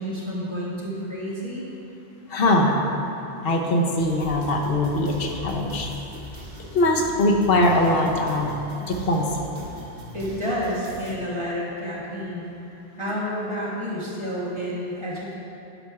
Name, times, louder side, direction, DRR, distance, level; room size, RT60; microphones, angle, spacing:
voice 1, 0.0-1.6 10.1-12.5 13.0-15.4, equal, 25° right, -6 dB, 1.5 m, -30 dB
voice 2, 2.3-2.8 3.4-5.9 6.7-8.5 8.9-9.3, left 1 dB, 60° left, 0 dB, 1.0 m, -21 dB
sound 1, 4.0-11.2, right 1 dB, 75° right, 1.3 m, -40 dB
11.5 x 4.3 x 4.7 m, 3.0 s
omnidirectional pair, 1.1 m